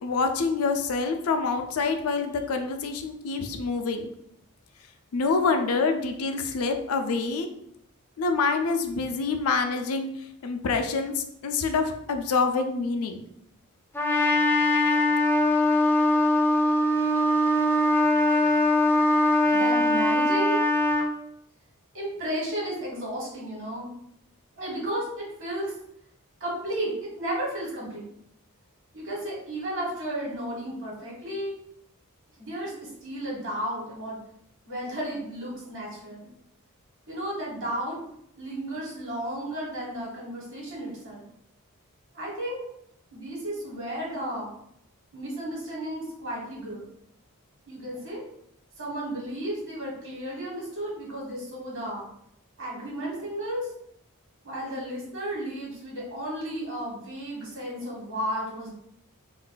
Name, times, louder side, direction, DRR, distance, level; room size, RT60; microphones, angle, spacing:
voice 1, 0.0-4.1 5.1-7.5 8.2-10.1 10.4-13.2, left 4 dB, 75° left, 6 dB, 0.4 m, -26 dB
Trumpet, 13.9-21.1, left 1 dB, 10° left, 0.3 m, -22 dB
voice 2, 19.3-20.7 21.9-23.9 24.6-25.8 26.4-28.1 28.9-31.6 32.4-34.2 34.7-36.2 37.1-38.0 38.4-41.2 42.1-42.6 43.1-44.5 45.1-46.8 47.7-48.2 48.8-52.1 52.6-53.7 54.4-58.7, right 1 dB, 60° right, -3 dB, 1.2 m, -33 dB
2.5 x 2.2 x 3.8 m, 0.74 s
head